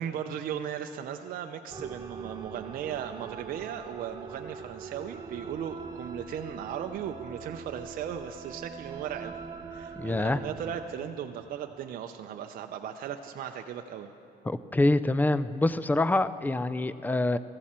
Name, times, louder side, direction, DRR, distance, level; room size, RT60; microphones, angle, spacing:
voice 1, 0.0-9.3 9.7-14.1, right 9 dB, 55° right, 5 dB, 0.5 m, -37 dB
sound 1, 1.7-10.9, right 5 dB, 25° right, 0.7 m, -43 dB
voice 2, 10.0-10.4 14.5-17.4, left 2 dB, 10° left, 15 dB, 0.3 m, -26 dB
14.5 x 14.0 x 4.3 m, 2.9 s
cardioid pair, 110°, 17 cm